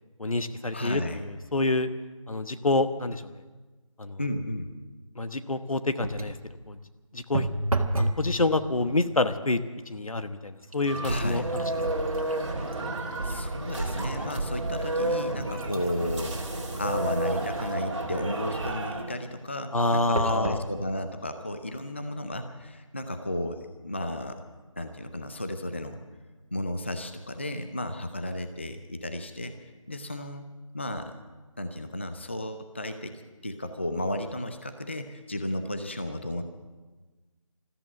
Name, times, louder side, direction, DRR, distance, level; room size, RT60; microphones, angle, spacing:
voice 1, 0.2-1.2 1.5-1.9 2.3-3.4 4.0-4.2 5.2-6.4 6.7-6.8 7.1-7.5 8.0-9.6 9.9-11.6 12.1-12.2 19.7-20.6, left 2 dB, 80° left, 10 dB, 1.1 m, -27 dB
voice 2, 0.7-1.2 4.2-4.7 11.0-11.4 13.2-16.4 16.8-24.4 24.8-26.0 26.5-29.5 29.9-30.5 30.7-31.1 31.6-36.4, left 1 dB, 20° left, 8 dB, 0.5 m, -33 dB
sound 1, 6.0-6.5 7.3-8.2 8.6-9.1 9.8-10.0 10.4-13.9 14.4-14.5 15.2-17.9 20.2-20.7 21.4-21.5 21.7-21.8, right 2 dB, 90° right, 1.6 m, -34 dB
sound 2, 10.9-19.2, right 2 dB, 55° right, 2.5 m, -31 dB
14.0 x 14.0 x 7.2 m, 1.3 s
figure-of-eight pair, 170°, 18 cm